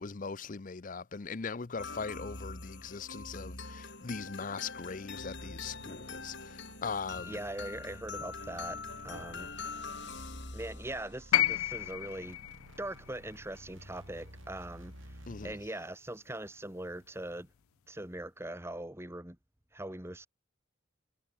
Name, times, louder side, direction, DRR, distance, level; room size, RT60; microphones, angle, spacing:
voice 1, 0.0-7.4 10.1-10.4 15.3-15.6, left 5 dB, 40° left, 0.6 m, -40 dB
sound 1, 1.8-11.5, left 4 dB, 55° left, 6.2 m, -44 dB
sound 2, 5.2-15.7, right 1 dB, 75° right, 6.5 m, -53 dB
voice 2, 7.2-8.8 9.0-9.5 10.5-12.4 12.8-15.2 15.4-17.5 17.9-19.4 19.7-20.3, right 1 dB, 10° right, 1.5 m, -41 dB
sound 3, 11.3-15.5 16.7-16.8, left 14 dB, 90° left, 0.3 m, -33 dB
head